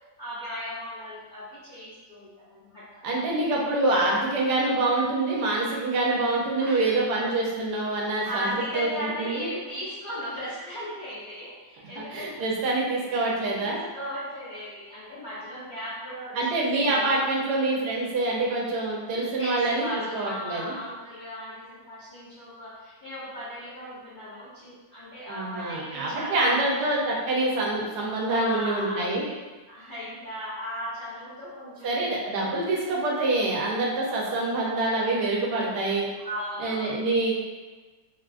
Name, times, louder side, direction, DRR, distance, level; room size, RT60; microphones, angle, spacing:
voice 1, 0.2-2.8 6.6-7.0 7.9-12.4 13.6-17.2 19.4-26.7 28.3-29.1 29.7-32.1 36.2-37.1, equal, 50° left, -12 dB, 0.5 m, -37 dB
voice 2, 3.0-8.5 8.7-9.5 12.0-13.8 16.3-20.7 25.3-29.2 31.8-36.1 36.6-37.3, right 2 dB, 75° right, -3 dB, 1.2 m, -26 dB
3.3 x 2.4 x 2.4 m, 1.3 s
omnidirectional pair, 1.8 m